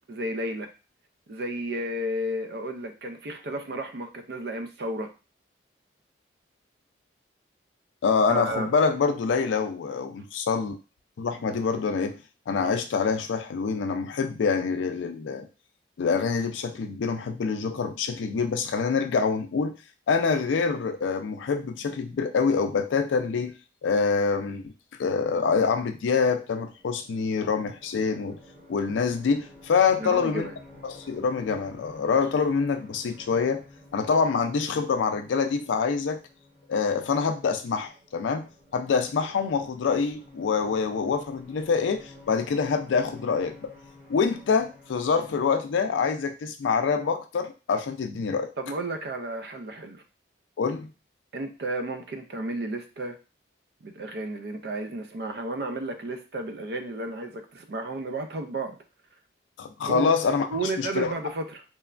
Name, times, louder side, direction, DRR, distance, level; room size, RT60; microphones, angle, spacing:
voice 1, 0.1-0.7 1.3-5.1 8.3-8.7 30.0-30.6 48.6-50.0 51.3-53.2 53.8-58.8 59.9-60.1 60.5-61.6, right 1 dB, 60° right, 6 dB, 0.4 m, -32 dB
voice 2, 8.0-10.7 11.2-12.2 12.5-15.5 16.0-19.8 20.1-23.5 23.8-24.7 25.0-28.4 28.7-30.5 30.8-33.6 33.9-36.2 36.7-38.5 38.7-43.7 44.1-48.5 50.6-50.9 59.6-60.5 60.8-61.1, left 5 dB, 85° left, 7 dB, 0.4 m, -25 dB
sound 1, 26.3-45.5, left 2 dB, 35° right, 0.9 m, -51 dB
3.0 x 2.2 x 2.4 m, 0.32 s
head